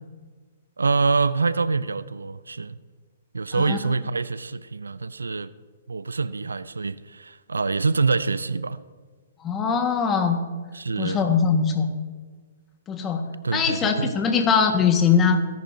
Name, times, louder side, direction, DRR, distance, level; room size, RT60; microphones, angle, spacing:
voice 1, 0.8-2.8 3.3-5.5 5.9-8.8 10.7-11.3 13.4-14.1, right 4 dB, 90° right, 0.5 m, -25 dB
voice 2, 9.4-10.4 11.0-11.9 12.9-13.2 13.5-15.4, left 6 dB, 20° left, 1.6 m, -21 dB
22.0 x 10.5 x 2.8 m
hypercardioid pair, 130°, 0 cm